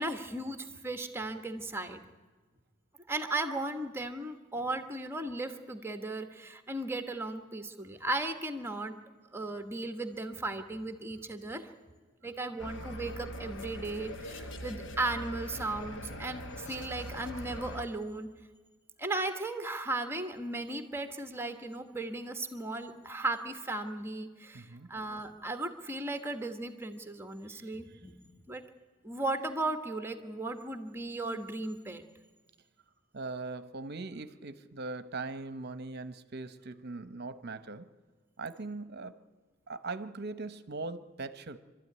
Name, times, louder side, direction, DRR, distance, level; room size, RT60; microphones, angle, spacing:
voice 1, 0.0-2.0 3.1-8.9 9.3-11.7 12.2-18.3 19.0-28.2 28.5-28.6 29.0-32.0, right 2 dB, 10° right, 7 dB, 1.2 m, -36 dB
sound 1, 12.6-17.9, equal, 60° left, 1.2 m, -42 dB
voice 2, 24.5-24.9 27.5-28.0 33.1-37.9 38.4-39.2 39.7-41.6, right 3 dB, 50° right, 12 dB, 0.9 m, -40 dB
25.0 x 13.0 x 9.6 m, 1.3 s
head